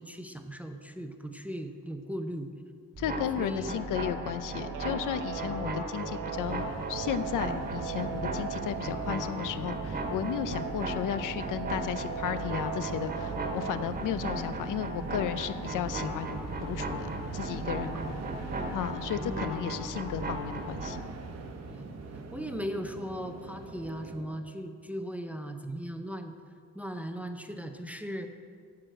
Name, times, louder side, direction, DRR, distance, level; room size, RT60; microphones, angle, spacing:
voice 1, 0.0-2.5 3.4-3.9 17.9-18.3 19.2-19.7 21.7-21.9 22.3-26.4 26.7-28.3, equal, 5° right, 6 dB, 0.4 m, -38 dB
sound 1, 2.9-21.0, right 1 dB, 30° right, 1.3 m, -37 dB
voice 2, 3.0-18.0 18.7-21.0, left 10 dB, 80° left, 12 dB, 0.6 m, -34 dB
Guitar, 4.5-13.9, right 9 dB, 80° right, 0.6 m, -40 dB
sound 2, 6.4-24.2, right 3 dB, 55° right, 1.0 m, -42 dB
14.0 x 4.8 x 7.6 m, 2.1 s
cardioid pair, 175°, 31 cm